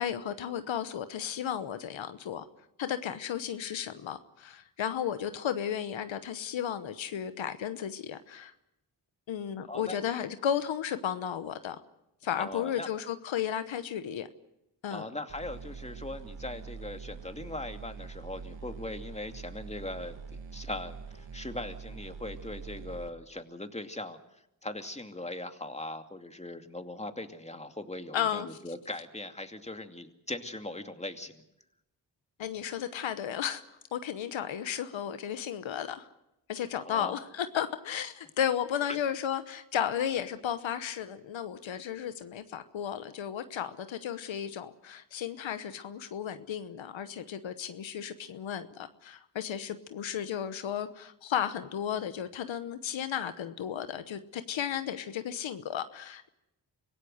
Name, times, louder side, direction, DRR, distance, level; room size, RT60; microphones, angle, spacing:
voice 1, 0.0-2.4 2.8-8.5 9.3-11.8 12.2-14.3 14.8-15.1 28.1-28.6 32.4-33.6 33.9-36.1 36.5-56.3, left 9 dB, 90° left, 11 dB, 1.1 m, -34 dB
voice 2, 9.7-10.0 12.4-12.9 14.9-20.2 20.5-24.2 24.6-31.4 36.8-37.2 38.9-39.0, left 2 dB, 15° left, 6 dB, 2.5 m, -40 dB
sound 1, 15.3-23.1, right 5 dB, 80° right, 1.7 m, -44 dB
25.0 x 16.5 x 7.9 m, 0.84 s
cardioid pair, 40°, 45 cm